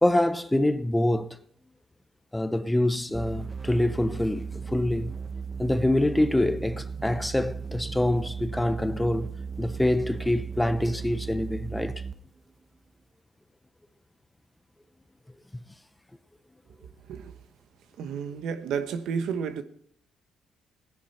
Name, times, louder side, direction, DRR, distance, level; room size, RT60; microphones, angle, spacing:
voice 1, 0.0-1.4 2.3-5.1 5.6-9.3 9.6-12.0, left 1 dB, 10° left, 0.8 m, -25 dB
sound 1, 3.1-12.3, right 5 dB, 30° right, 1.0 m, -36 dB
voice 2, 18.0-19.6, right 6 dB, 80° right, 1.1 m, -31 dB
16.5 x 10.0 x 4.2 m
cardioid pair, 90°, 0 cm